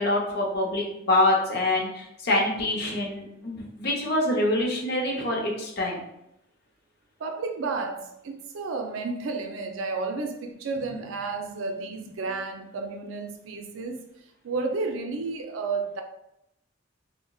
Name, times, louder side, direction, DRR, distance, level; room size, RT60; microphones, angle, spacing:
voice 1, 0.0-6.0, left 1 dB, 55° left, -1 dB, 0.7 m, -25 dB
voice 2, 7.2-14.0 14.4-16.0, right 3 dB, 85° right, 5 dB, 0.4 m, -32 dB
3.7 x 2.1 x 2.3 m, 0.81 s
head